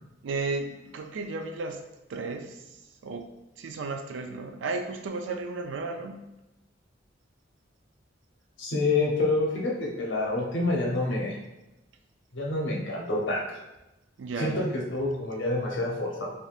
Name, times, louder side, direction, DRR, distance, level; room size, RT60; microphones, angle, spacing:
voice 1, 0.2-1.8 2.1-6.2 14.2-14.7, right 3 dB, 75° right, 5 dB, 0.4 m, -34 dB
voice 2, 8.6-11.3 12.3-13.4 14.4-16.3, left 2 dB, 75° left, -2 dB, 0.8 m, -27 dB
3.4 x 2.7 x 2.4 m, 0.96 s
head